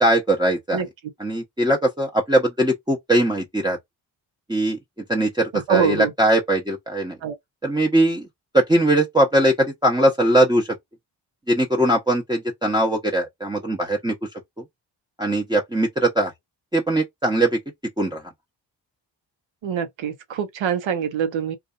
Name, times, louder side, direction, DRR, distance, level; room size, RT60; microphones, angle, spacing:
voice 1, 0.0-0.8 1.2-3.8 4.5-4.8 5.1-7.2 7.6-8.3 8.5-10.7 11.5-14.1 15.2-16.3 16.7-17.6 18.0-18.2, right 1 dB, 10° right, 0.8 m, -20 dB
voice 2, 5.5-6.1 7.2-7.3 19.6-21.6, right 7 dB, 85° right, 0.8 m, -24 dB
2.6 x 2.4 x 2.4 m
cardioid pair, 55°, 45 cm